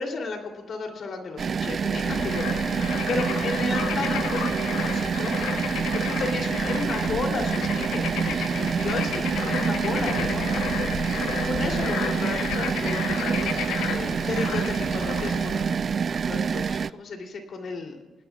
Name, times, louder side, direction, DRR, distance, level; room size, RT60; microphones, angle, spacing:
voice 1, 0.0-5.3 5.9-10.6 11.4-15.7 16.2-18.0, left 3 dB, 55° left, 2 dB, 3.1 m, -33 dB
sound 1, 1.4-16.9, right 6 dB, 45° right, 0.4 m, -27 dB
Bird / Frog, 2.0-15.8, left 8 dB, 90° left, 0.9 m, -33 dB
29.5 x 18.0 x 2.4 m, 1.2 s
cardioid pair, 90°, 0 cm